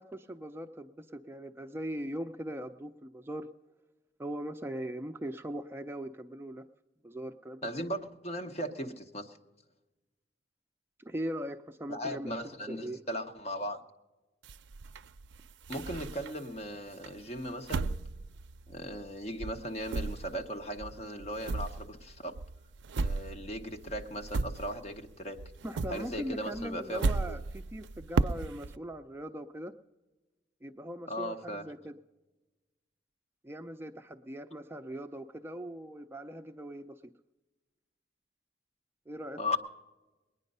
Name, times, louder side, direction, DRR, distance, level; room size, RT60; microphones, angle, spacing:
voice 1, 0.0-3.5 4.2-6.6 7.0-7.7 11.0-13.0 25.6-29.7 30.6-32.0 33.4-37.0 39.1-39.4, right 1 dB, 15° right, 6 dB, 0.4 m, -40 dB
voice 2, 7.6-9.4 11.9-13.8 15.7-17.9 18.7-22.4 23.0-25.4 25.9-27.4 31.1-31.6 39.4-39.6, equal, 40° left, 4 dB, 1.0 m, -37 dB
sound 1, 14.4-16.6 17.0-19.1 19.4-25.1 25.4-28.8, right 3 dB, 90° right, 0.4 m, -35 dB
20.5 x 9.9 x 5.4 m, 1.2 s
head